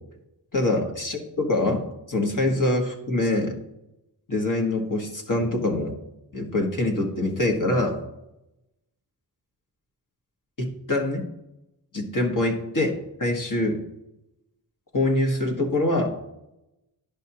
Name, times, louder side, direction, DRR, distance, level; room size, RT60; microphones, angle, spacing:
voice 1, 0.5-3.6 4.3-6.0 6.3-8.0 10.6-11.2 11.9-13.8 14.9-16.1, left 2 dB, 50° left, 2 dB, 1.5 m, -24 dB
11.0 x 5.3 x 2.9 m, 0.90 s
cardioid pair, 55°, 41 cm